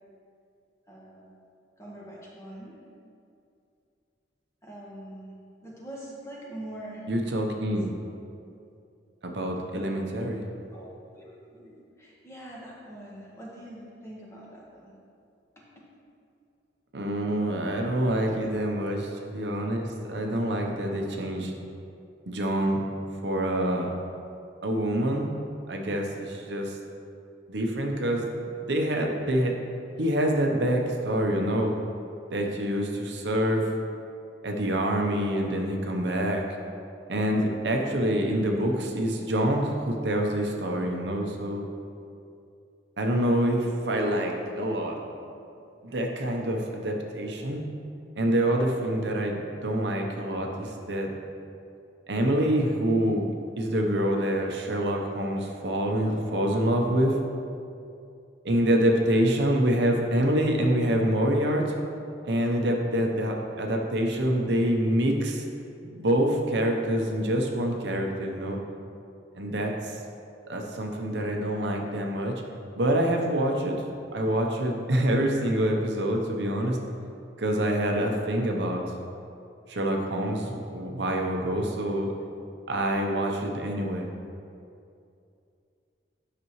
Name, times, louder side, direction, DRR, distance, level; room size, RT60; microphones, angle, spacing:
voice 1, 0.9-1.2 1.8-2.8 4.6-5.4 5.6-7.1 10.7-14.9 15.6-15.9 18.3-18.4, right 1 dB, 15° left, -5 dB, 1.3 m, -43 dB
voice 2, 7.1-7.9 9.2-10.5 16.9-21.5 22.3-22.8 23.2-23.9 24.6-25.3 25.7-26.8 27.5-28.3 28.6-29.5 30.0-31.7 32.3-33.7 34.4-36.4 37.1-41.6 43.0-45.0 45.8-47.6 48.2-51.1 52.1-53.3 53.6-57.2 58.4-61.6 62.3-65.4 65.8-68.6 69.3-70.0 70.5-72.3 72.8-73.8 74.1-76.8 77.4-78.8 79.7-82.1 82.7-84.1, right 1 dB, 70° right, 1 dB, 0.8 m, -26 dB
9.8 x 6.0 x 3.1 m, 2.5 s
head